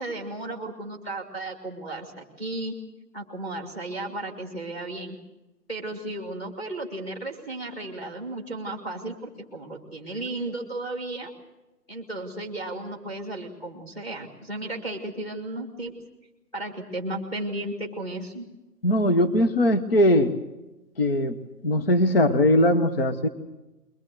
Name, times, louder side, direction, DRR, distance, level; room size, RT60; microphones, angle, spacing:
voice 1, 0.0-2.7 3.1-5.2 5.7-11.3 11.9-15.9 16.5-18.5, right 2 dB, 5° left, 3 dB, 1.8 m, -34 dB
voice 2, 18.8-20.4 21.0-21.4 21.6-23.3, left 1 dB, 35° left, 9 dB, 1.1 m, -20 dB
23.0 x 19.0 x 7.7 m, 0.99 s
hypercardioid pair, 175°, 49 cm